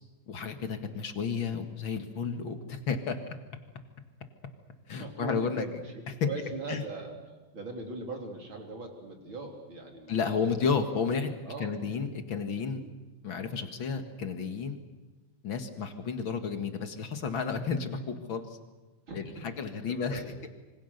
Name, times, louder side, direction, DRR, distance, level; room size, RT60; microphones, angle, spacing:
voice 1, 0.3-3.2 4.9-5.7 6.7-6.8 10.1-11.3 11.6-12.8 13.2-14.8 15.4-18.5 19.1-19.2 19.6-20.2, left 5 dB, 45° left, 7 dB, 2.0 m, -32 dB
voice 2, 5.0-10.7 11.4-11.8 19.1-19.5 19.9-20.4, right 2 dB, 35° right, 2 dB, 3.9 m, -40 dB
26.5 x 25.5 x 6.7 m, 1.2 s
omnidirectional pair, 4.0 m